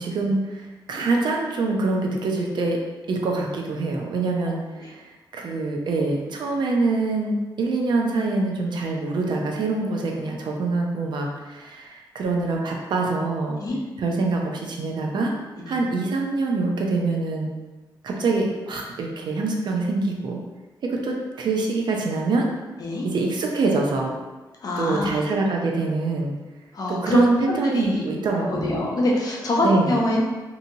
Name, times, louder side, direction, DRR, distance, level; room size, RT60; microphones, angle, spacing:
voice 1, 0.0-2.8 3.1-13.6 14.0-15.3 15.7-17.5 18.0-20.4 20.8-22.5 23.0-24.1 24.8-26.3 26.9-28.8 29.6-30.0, right 3 dB, 70° right, 0 dB, 0.5 m, -24 dB
voice 2, 24.6-25.2 26.7-27.2 27.5-30.2, left 2 dB, 50° left, -3 dB, 0.7 m, -25 dB
2.7 x 2.7 x 2.6 m, 1.2 s
cardioid pair, 105°, 8 cm